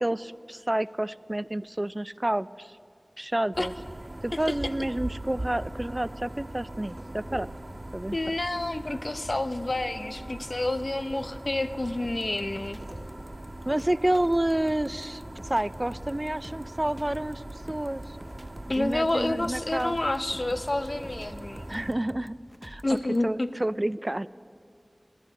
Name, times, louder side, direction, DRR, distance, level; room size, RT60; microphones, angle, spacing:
voice 1, 0.0-2.7 3.2-3.7 4.2-7.5 7.9-8.2 13.7-15.2 15.5-18.2 18.7-20.0 21.7-22.4 22.6-22.8 23.2-24.3, right 1 dB, 30° right, 18 dB, 0.3 m, -29 dB
sound 1, 3.5-21.9, right 1 dB, 65° right, 1.5 m, -41 dB
voice 2, 8.1-12.8 18.7-21.7 22.8-23.5, left 2 dB, 60° left, 11 dB, 0.6 m, -29 dB
sound 2, 12.0-23.2, equal, 10° right, 0.7 m, -48 dB
16.5 x 11.5 x 7.5 m, 2.3 s
wide cardioid pair, 45°, 0 cm